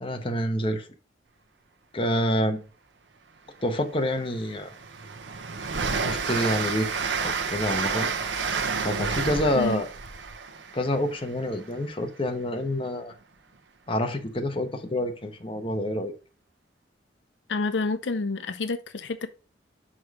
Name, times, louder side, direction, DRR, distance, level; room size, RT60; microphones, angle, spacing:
voice 1, 0.0-0.9 1.9-2.7 3.6-4.7 6.0-6.9 7.2-8.1 8.8-9.9 10.7-13.1 13.9-16.1, left 1 dB, 30° left, 0.9 m, -27 dB
Train, 3.6-3.7 4.1-11.8, right 5 dB, 85° right, 0.9 m, -30 dB
voice 2, 17.5-19.3, left 3 dB, 85° left, 0.6 m, -28 dB
6.2 x 4.8 x 4.7 m
head